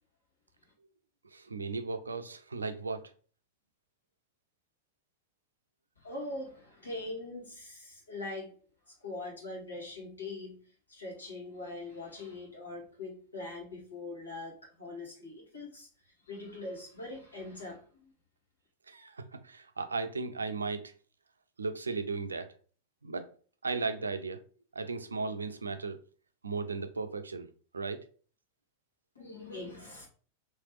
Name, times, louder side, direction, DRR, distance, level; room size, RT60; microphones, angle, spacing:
voice 1, 1.3-3.0 18.9-20.9 21.6-22.5 23.0-23.3 23.6-24.4 24.7-26.0 26.4-28.0, right 4 dB, 75° right, 0.4 m, -36 dB
voice 2, 6.0-8.6 8.9-18.1 29.2-30.1, left 2 dB, 75° left, 1.7 m, -42 dB
3.3 x 3.1 x 3.0 m
figure-of-eight pair, 90°, 0 cm